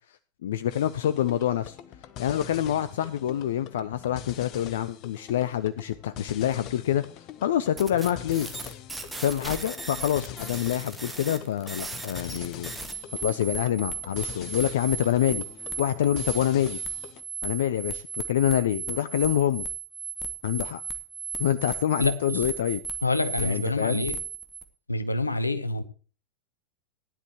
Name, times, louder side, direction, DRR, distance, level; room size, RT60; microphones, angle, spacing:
voice 1, 0.4-1.8 2.2-7.0 7.4-8.5 9.2-12.7 13.2-15.5 15.8-16.8 17.4-19.7 20.4-20.8 21.4-22.8 23.4-24.1, left 11 dB, 60° left, 0.5 m, -26 dB
sound 1, 0.7-17.2, left 10 dB, 40° left, 0.9 m, -43 dB
sound 2, 7.8-24.6, right 5 dB, 5° right, 1.6 m, -36 dB
voice 2, 22.0-22.4 23.0-24.2 24.9-25.8, left 2 dB, 85° left, 1.0 m, -27 dB
16.0 x 10.5 x 3.0 m
figure-of-eight pair, 90°, 0 cm